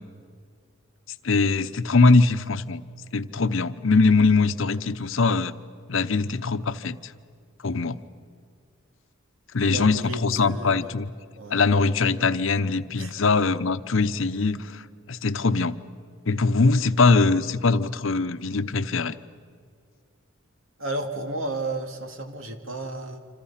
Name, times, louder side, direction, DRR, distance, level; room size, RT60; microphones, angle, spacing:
voice 1, 1.2-2.8 3.1-5.5 5.9-7.1 7.6-8.0 9.5-11.1 11.5-14.8 15.1-15.7 16.3-19.1, left 3 dB, 70° left, 12 dB, 0.8 m, -22 dB
voice 2, 9.6-10.8 11.4-11.9 13.0-13.1 20.8-23.2, right 2 dB, 75° right, 6 dB, 2.4 m, -33 dB
27.5 x 27.0 x 5.8 m, 2.2 s
head